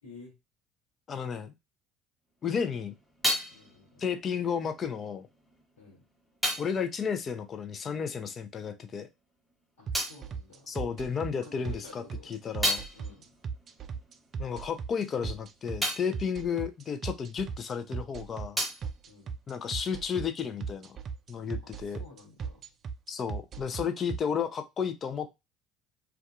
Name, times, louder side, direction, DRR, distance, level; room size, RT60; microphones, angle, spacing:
voice 1, 0.0-0.4 3.5-4.0 5.8-6.0 9.8-10.7 11.4-12.4 12.9-13.3 19.0-19.3 21.6-22.7, left 3 dB, 85° left, -4 dB, 1.1 m, -52 dB
voice 2, 1.1-1.5 2.4-2.9 4.0-5.3 6.6-9.1 10.7-12.8 14.4-18.6 19.5-21.0 21.3-22.0 23.1-25.3, left 7 dB, 40° left, 10 dB, 0.5 m, -33 dB
sound 1, 2.4-8.4 8.7-11.4 11.8-17.8 18.1-20.1, equal, 5° left, 1.0 m, -37 dB
sound 2, 9.9-24.2, right 6 dB, 45° right, 0.3 m, -37 dB
2.6 x 2.3 x 2.3 m, 0.22 s
hypercardioid pair, 65°, 0 cm